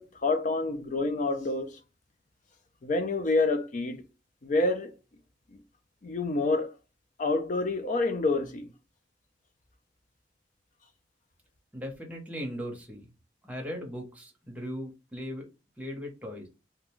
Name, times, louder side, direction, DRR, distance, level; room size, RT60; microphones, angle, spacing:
voice 1, 0.0-1.8 2.8-4.0 4.4-4.9 5.5-5.6 6.0-6.7 7.2-8.7, left 3 dB, 45° left, 0.4 m, -28 dB
voice 2, 11.7-13.1 13.4-15.5 15.8-16.5, equal, 10° right, 0.8 m, -38 dB
2.4 x 2.2 x 2.9 m
head